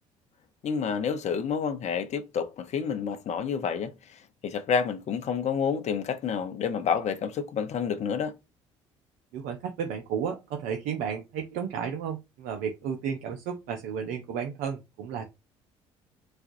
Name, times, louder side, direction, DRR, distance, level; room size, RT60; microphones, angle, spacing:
voice 1, 0.6-8.3, left 6 dB, 50° left, 0.7 m, -29 dB
voice 2, 9.3-15.3, right 7 dB, 70° right, 0.6 m, -33 dB
4.2 x 2.3 x 2.6 m
hypercardioid pair, 55°, 15 cm